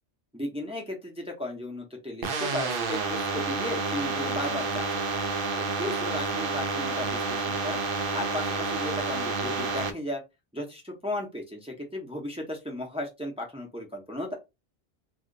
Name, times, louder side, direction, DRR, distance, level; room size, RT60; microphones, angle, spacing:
voice 1, 0.3-5.2 5.5-7.8 8.1-10.2 10.5-14.3, left 1 dB, 5° right, -1 dB, 0.6 m, -35 dB
sound 1, 2.2-9.9, right 3 dB, 60° right, 0.7 m, -29 dB
2.7 x 2.4 x 3.7 m, 0.24 s
omnidirectional pair, 1.2 m